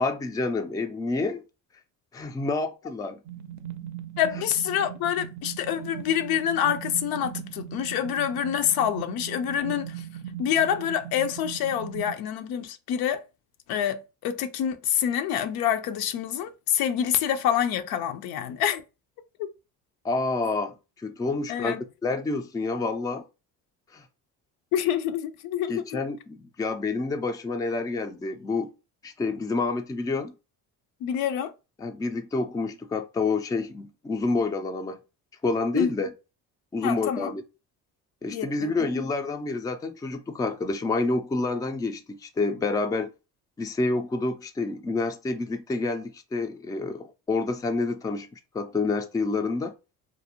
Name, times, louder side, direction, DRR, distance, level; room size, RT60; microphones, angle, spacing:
voice 1, 0.0-1.4 2.1-3.2 20.0-21.7 22.0-23.2 23.9-24.1 25.7-28.7 29.0-30.3 31.8-35.0 35.4-36.1 36.7-37.4 38.2-43.1 43.6-49.7, left 3 dB, 10° left, 0.3 m, -28 dB
sound 1, 3.3-12.2, right 10 dB, 50° right, 0.5 m, -39 dB
voice 2, 4.2-10.0 10.4-13.2 13.7-18.8 19.4-19.5 21.5-21.8 24.7-26.0 31.0-31.5 35.7-35.9 36.8-37.3 38.3-38.9, left 9 dB, 75° left, 0.5 m, -27 dB
2.5 x 2.0 x 2.8 m
supercardioid pair, 80°, 36 cm